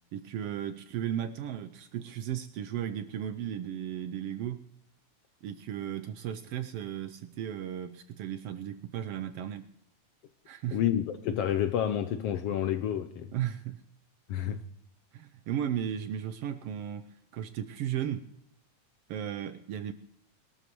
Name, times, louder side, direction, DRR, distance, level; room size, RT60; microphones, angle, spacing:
voice 1, 0.1-4.7 5.4-9.7 10.5-10.8 13.3-13.8 15.1-18.3 19.1-19.9, right 10 dB, 80° right, 1.3 m, -35 dB
voice 2, 10.7-13.3 14.3-14.6, left 10 dB, 75° left, 1.4 m, -29 dB
21.5 x 13.0 x 3.1 m
omnidirectional pair, 3.3 m